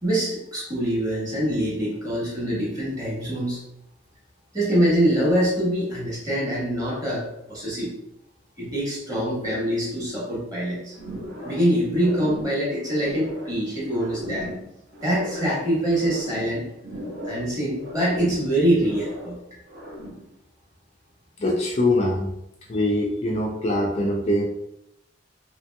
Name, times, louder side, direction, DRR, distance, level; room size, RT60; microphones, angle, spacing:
voice 1, 0.0-3.6 4.5-7.9 8.6-10.9 11.4-14.5 15.0-16.6 17.2-19.4, right 1 dB, 20° right, -6 dB, 1.2 m, -24 dB
sound 1, 10.9-11.7 11.9-13.6 13.9-15.6 15.9-17.5 17.8-19.3 19.7-20.3, equal, 70° right, 1.0 m, -37 dB
voice 2, 21.4-22.3 22.7-24.4, left 1 dB, 35° left, -1 dB, 0.4 m, -23 dB
2.8 x 2.8 x 2.2 m, 0.84 s
head